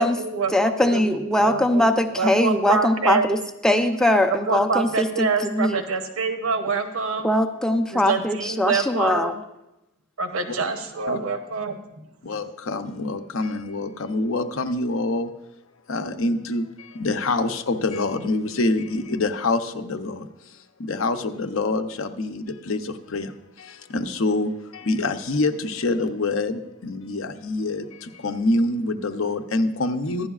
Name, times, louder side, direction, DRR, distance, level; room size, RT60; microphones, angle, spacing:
voice 1, 0.0-1.9 2.2-3.3 4.2-7.3 7.9-9.4 10.2-12.0, right 4 dB, 85° right, 6 dB, 0.9 m, -26 dB
voice 2, 0.5-3.4 3.6-5.1 5.5-5.8 7.2-9.3, left 1 dB, 5° left, 6 dB, 0.5 m, -21 dB
voice 3, 12.2-15.3 15.9-30.3, left 2 dB, 70° left, 8 dB, 0.7 m, -26 dB
15.5 x 11.0 x 2.4 m, 0.93 s
head